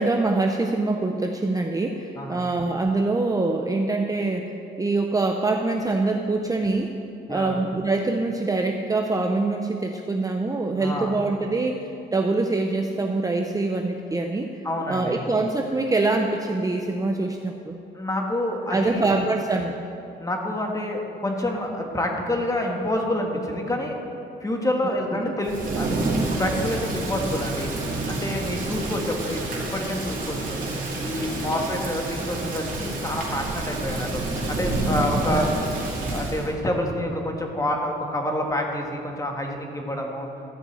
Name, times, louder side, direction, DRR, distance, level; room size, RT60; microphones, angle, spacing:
voice 1, 0.0-7.0 7.3-14.5 14.9-17.8 18.7-19.8 24.8-25.4 35.3-35.5, right 3 dB, 15° right, 3 dB, 0.6 m, -24 dB
voice 2, 7.3-7.6 10.8-11.2 14.6-15.2 17.9-19.1 20.2-24.0 24.4-27.7 28.1-30.6 31.0-35.5 36.1-40.3, left 1 dB, 15° left, 1 dB, 1.7 m, -28 dB
Thunder / Rain, 25.4-36.5, right 2 dB, 45° right, 2.4 m, -28 dB
13.5 x 5.3 x 7.8 m, 2.8 s
cardioid pair, 90°, 20 cm